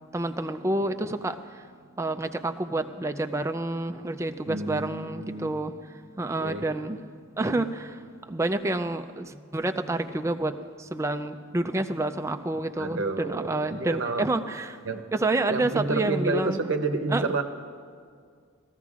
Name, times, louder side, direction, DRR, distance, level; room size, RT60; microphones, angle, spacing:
voice 1, 0.1-1.4 2.0-5.8 6.2-7.1 7.4-14.8 15.1-16.6 17.1-17.2, right 2 dB, 15° right, 7 dB, 0.4 m, -28 dB
voice 2, 4.5-5.6 6.4-6.7 12.8-14.2 14.9-15.1 15.5-17.4, right 3 dB, 70° right, 6 dB, 0.8 m, -29 dB
20.0 x 14.5 x 2.4 m, 2.1 s
head